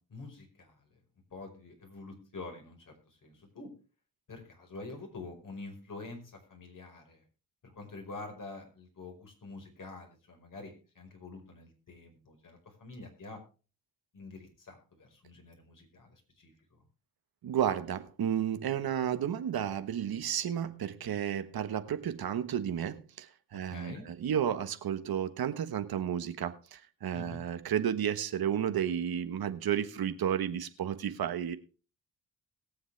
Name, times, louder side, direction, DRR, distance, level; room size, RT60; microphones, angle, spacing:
voice 1, 0.1-0.8 1.3-2.9 3.2-3.7 4.3-7.2 7.6-13.4 14.1-16.1 16.4-16.8 23.6-24.0 27.1-27.4, left 3 dB, 55° left, 4.9 m, -47 dB
voice 2, 17.4-31.6, right 9 dB, 65° right, 1.3 m, -32 dB
21.5 x 7.3 x 3.4 m
cardioid pair, 70°, 39 cm